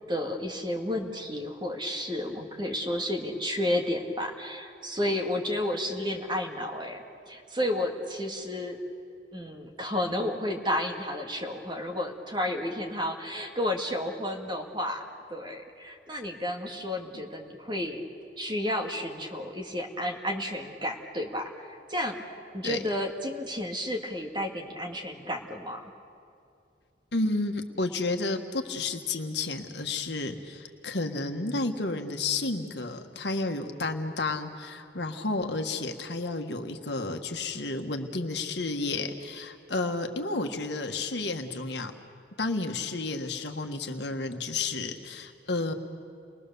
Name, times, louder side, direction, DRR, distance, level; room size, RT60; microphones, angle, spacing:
voice 1, 0.1-8.8 9.3-15.0 15.3-18.0 18.4-22.2 22.5-25.9, left 1 dB, 25° right, 2 dB, 2.1 m, -32 dB
voice 2, 27.1-41.9 42.4-45.7, left 3 dB, 70° left, 5 dB, 1.5 m, -31 dB
29.5 x 21.5 x 6.9 m, 2.5 s
head